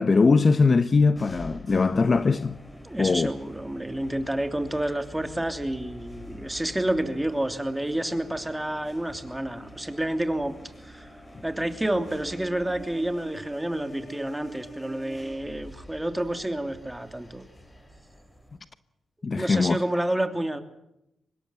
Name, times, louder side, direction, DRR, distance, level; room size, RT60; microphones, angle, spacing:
voice 1, 0.0-2.6 3.0-3.3 19.2-19.8, left 4 dB, 40° left, 0.9 m, -21 dB
sound 1, 1.2-18.6, equal, 15° left, 5.3 m, -45 dB
voice 2, 2.8-10.5 10.8-11.1 11.4-17.4 19.3-20.6, right 1 dB, 10° right, 3.0 m, -29 dB
25.0 x 21.5 x 7.6 m
cardioid pair, 85°, 0 cm